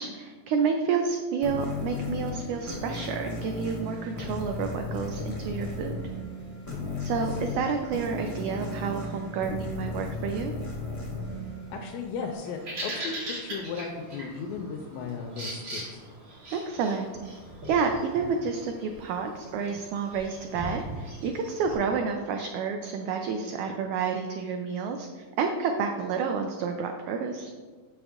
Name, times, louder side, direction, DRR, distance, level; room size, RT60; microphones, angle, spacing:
voice 1, 0.0-6.0 7.0-10.5 16.5-17.1 17.7-27.5, right 5 dB, 90° right, 4 dB, 1.6 m, -30 dB
sound 1, 1.4-12.6, left 2 dB, 10° left, 1.2 m, -35 dB
voice 2, 11.7-16.0, left 5 dB, 85° left, 1 dB, 2.3 m, -36 dB
Bird vocalization bird call bird song, 12.3-21.8, right 1 dB, 40° right, 2.7 m, -40 dB
7.1 x 6.9 x 3.6 m, 1.5 s
omnidirectional pair, 4.0 m